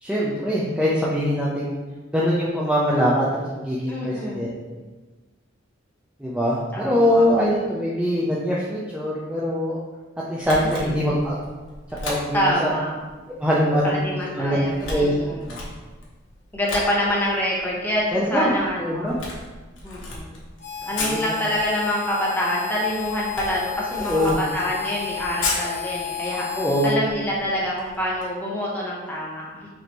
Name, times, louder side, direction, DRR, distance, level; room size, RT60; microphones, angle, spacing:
voice 1, 0.0-1.8 2.1-4.5 6.2-9.8 10.3-11.3 12.0-12.7 13.4-15.1 15.5-15.6 18.1-18.5 18.8-19.2 21.1-21.2 24.0-24.4 26.5-26.9, equal, 5° right, -7 dB, 0.5 m, -23 dB
voice 2, 3.9-4.5 6.7-7.3 10.5-11.0 12.3-12.9 13.8-15.5 16.5-19.1 19.8-20.4 20.8-29.7, equal, 10° left, -5 dB, 0.9 m, -26 dB
Camera, 10.4-28.2, left 2 dB, 80° left, 1.0 m, -36 dB
Harmonica, 20.6-26.9, left 10 dB, 30° left, 1.2 m, -32 dB
5.2 x 2.8 x 3.0 m, 1.2 s
head